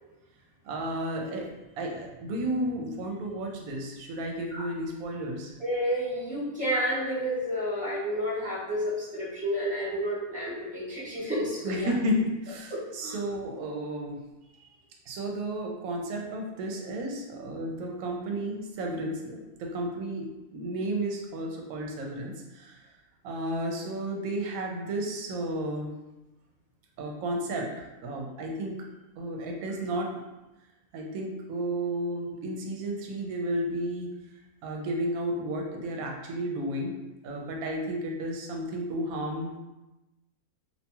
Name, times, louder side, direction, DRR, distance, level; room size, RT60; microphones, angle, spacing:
voice 1, 0.6-1.5 1.8-5.5 11.6-14.2 14.5-14.7 15.1-22.8 23.2-25.9 27.0-28.8 29.2-30.2 30.9-34.1 34.6-36.9 37.2-39.6, right 1 dB, 75° right, 1 dB, 1.0 m, -32 dB
voice 2, 5.6-11.9 12.7-13.1, equal, 10° right, -8 dB, 0.4 m, -30 dB
2.5 x 2.2 x 2.8 m, 1.0 s
omnidirectional pair, 1.5 m